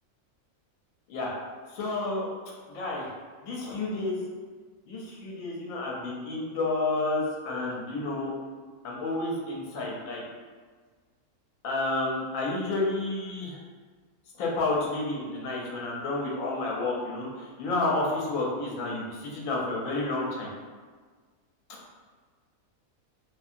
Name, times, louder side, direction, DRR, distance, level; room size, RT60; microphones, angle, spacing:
voice 1, 1.7-2.3 2.7-3.1 3.4-4.2 4.9-8.3 8.8-10.2 11.6-13.6 14.4-20.5, left 2 dB, 70° left, -3 dB, 1.0 m, -30 dB
2.7 x 2.7 x 2.5 m, 1.5 s
omnidirectional pair, 1.6 m